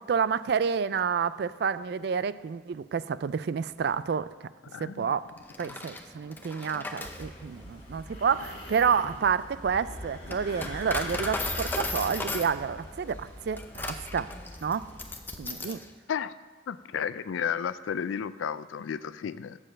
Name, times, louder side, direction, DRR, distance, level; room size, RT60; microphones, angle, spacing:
voice 1, 0.0-4.3 4.8-5.2 5.6-14.3 14.6-14.9 15.4-15.8, right 6 dB, 55° right, 16 dB, 0.3 m, -29 dB
voice 2, 4.6-5.1 5.7-5.8 16.1-16.3 16.7-19.6, left 7 dB, 85° left, 16 dB, 0.4 m, -33 dB
Coin (dropping), 5.4-15.9, left 2 dB, 10° left, 0.5 m, -37 dB
sound 1, 7.0-15.2, left 1 dB, 40° left, 2.0 m, -42 dB
7.4 x 6.7 x 7.4 m, 1.4 s
head